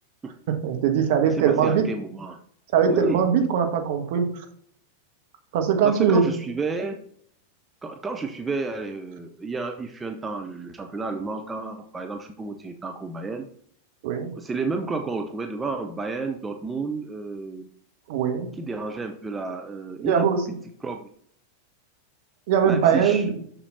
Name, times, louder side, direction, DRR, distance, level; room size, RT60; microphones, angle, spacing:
voice 1, 0.6-1.8 2.7-4.4 5.5-6.3 14.0-14.3 18.1-18.5 20.0-20.4 22.5-23.3, right 7 dB, 50° right, 5 dB, 1.5 m, -21 dB
voice 2, 1.2-2.4 2.8-3.2 5.8-7.0 7.8-13.5 14.3-17.7 18.6-20.3 20.8-21.1 22.6-23.3, right 3 dB, 15° right, 5 dB, 0.8 m, -31 dB
7.2 x 6.8 x 4.2 m, 0.62 s
figure-of-eight pair, 90°, 0 cm